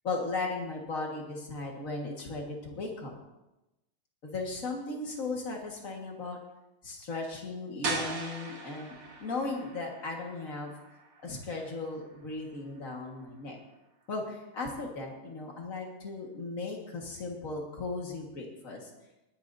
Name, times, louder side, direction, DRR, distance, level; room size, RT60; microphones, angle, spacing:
voice 1, 0.0-3.1 4.2-6.4 6.8-10.7 11.2-13.6 14.1-18.9, left 3 dB, 50° left, 0 dB, 1.0 m, -36 dB
sound 1, 7.8-13.5, right 3 dB, 35° right, 2.6 m, -41 dB
20.0 x 11.5 x 2.7 m, 0.97 s
omnidirectional pair, 4.0 m